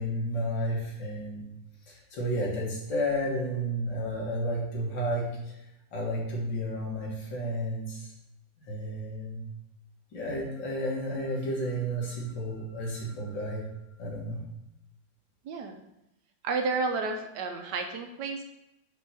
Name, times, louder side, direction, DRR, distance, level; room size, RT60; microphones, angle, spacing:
voice 1, 0.0-1.4 1.9-5.6 5.9-8.1 8.7-9.4 10.1-13.6 14.0-14.4, equal, 80° left, -3 dB, 2.4 m, -32 dB
voice 2, 16.4-18.4, right 4 dB, 70° right, 5 dB, 1.3 m, -31 dB
4.8 x 4.4 x 5.5 m, 0.88 s
omnidirectional pair, 2.0 m